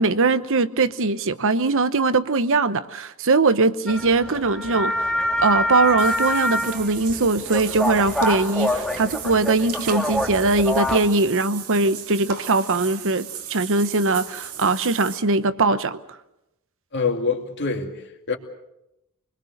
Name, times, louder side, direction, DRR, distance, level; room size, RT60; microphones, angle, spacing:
voice 1, 0.0-5.1 5.4-16.0, right 3 dB, 65° right, 1.0 m, -21 dB
sound 1, 3.9-11.0, left 1 dB, 5° left, 1.6 m, -26 dB
Water / Bathtub (filling or washing), 6.0-15.2, right 8 dB, 85° right, 2.7 m, -37 dB
voice 2, 16.9-18.4, left 4 dB, 50° left, 2.5 m, -25 dB
26.5 x 21.0 x 6.6 m
head